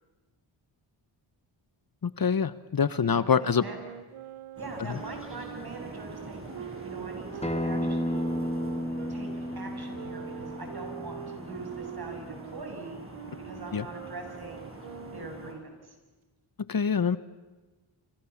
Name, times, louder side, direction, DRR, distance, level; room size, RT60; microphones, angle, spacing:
voice 1, 2.0-3.6 4.9-5.0 13.7-13.8 16.7-17.2, left 6 dB, 45° left, 16 dB, 1.0 m, -25 dB
voice 2, 3.0-3.8 4.6-8.2 9.1-13.0 13.4-14.7 15.0-16.0, right 2 dB, 50° right, 4 dB, 7.3 m, -43 dB
Wind instrument woodwind instrument, 3.3-9.1 9.9-15.7, right 9 dB, 85° right, 1.0 m, -44 dB
sound 1, 4.6-15.5, right 2 dB, 25° right, 6.4 m, -44 dB
Acoustic guitar, 7.4-12.6, left 1 dB, 15° left, 1.8 m, -33 dB
29.5 x 26.5 x 7.2 m, 1.3 s
cardioid pair, 55°, 48 cm